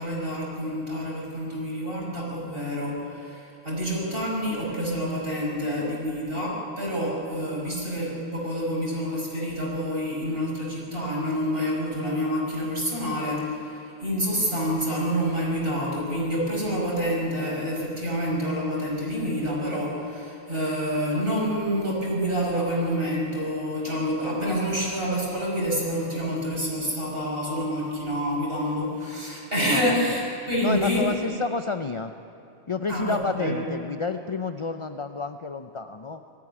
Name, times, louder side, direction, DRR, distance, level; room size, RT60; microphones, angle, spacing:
voice 1, 0.0-31.1 32.9-33.6, equal, 50° right, -3 dB, 5.9 m, -28 dB
voice 2, 29.7-30.2 30.6-32.1 32.7-36.2, left 4 dB, 40° left, 8 dB, 0.4 m, -30 dB
20.0 x 14.5 x 10.0 m, 2.7 s
omnidirectional pair, 1.3 m